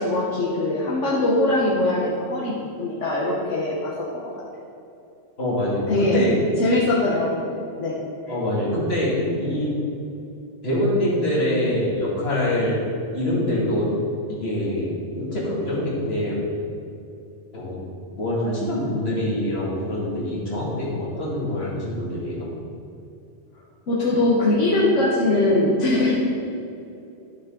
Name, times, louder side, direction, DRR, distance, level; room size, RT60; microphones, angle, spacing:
voice 1, 0.0-3.9 5.9-6.2 6.6-7.4 7.8-8.0 23.9-26.1, left 2 dB, 80° left, -6 dB, 1.5 m, -21 dB
voice 2, 5.4-6.4 8.3-9.7 10.6-12.8 13.1-13.9 14.3-16.4 17.5-17.8 18.2-22.5, left 1 dB, 55° left, -6 dB, 2.5 m, -24 dB
11.5 x 6.2 x 3.9 m, 2.6 s
omnidirectional pair, 1.2 m